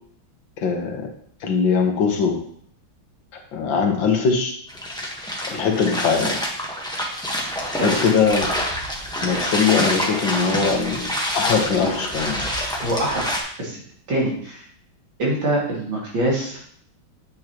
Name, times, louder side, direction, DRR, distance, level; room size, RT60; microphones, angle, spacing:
voice 1, 0.6-1.1 1.4-2.4 3.3-4.5 5.5-6.4 7.8-8.5 9.2-11.1 11.3-12.5, left 5 dB, 70° left, 3 dB, 1.9 m, -21 dB
sound 1, 4.7-13.4, equal, 5° left, 1.0 m, -27 dB
voice 2, 12.8-13.8 14.1-14.6 15.2-16.6, right 1 dB, 75° right, -4 dB, 3.2 m, -24 dB
8.7 x 7.4 x 3.0 m, 0.63 s
omnidirectional pair, 2.2 m